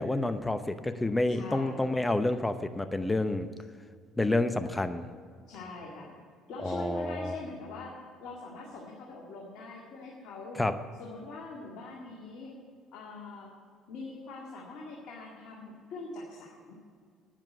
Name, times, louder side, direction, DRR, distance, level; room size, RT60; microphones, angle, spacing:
voice 1, 0.0-3.5 4.2-5.1 6.6-7.4 10.5-10.7, left 2 dB, 15° left, 10 dB, 0.8 m, -29 dB
voice 2, 1.3-1.8 5.5-6.2 6.5-10.6 11.0-12.5 12.9-13.5 13.9-16.8, left 2 dB, 60° left, -3 dB, 2.0 m, -43 dB
9.6 x 7.5 x 9.1 m, 2.1 s
hypercardioid pair, 55°, 0 cm